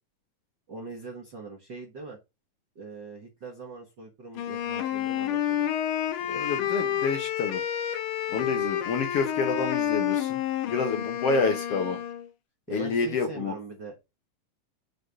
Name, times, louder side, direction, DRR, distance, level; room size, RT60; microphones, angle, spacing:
voice 1, 0.7-2.2 2.7-5.7 8.3-8.7 12.7-13.9, right 3 dB, 45° right, 1.6 m, -42 dB
Wind instrument woodwind instrument, 4.4-12.3, left 10 dB, 85° left, 2.4 m, -29 dB
voice 2, 6.3-7.6 8.3-10.4 10.7-12.0 12.7-13.5, left 4 dB, 65° left, 1.7 m, -28 dB
6.5 x 4.1 x 5.2 m
omnidirectional pair, 3.6 m